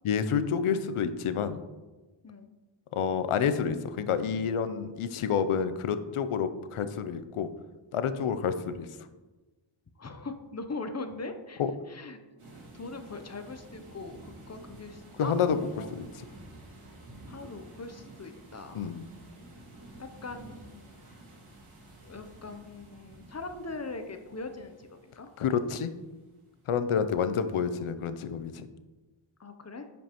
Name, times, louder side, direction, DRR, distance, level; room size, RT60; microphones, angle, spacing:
voice 1, 0.0-1.6 2.9-7.5 7.9-8.9 11.6-11.7 15.2-15.6 15.9-16.1 18.7-19.0 25.4-25.9 26.7-28.7, left 7 dB, 85° left, 11 dB, 0.6 m, -29 dB
voice 2, 10.0-11.6 11.9-12.2 12.5-15.3 15.7-15.9 17.3-18.8 20.0-21.1 22.0-25.3 29.4-29.9, left 3 dB, 35° left, 8 dB, 0.6 m, -41 dB
sound 1, 12.4-27.0, right 2 dB, 85° right, 2.2 m, -51 dB
9.2 x 5.3 x 3.0 m, 1.2 s
wide cardioid pair, 90°, 49 cm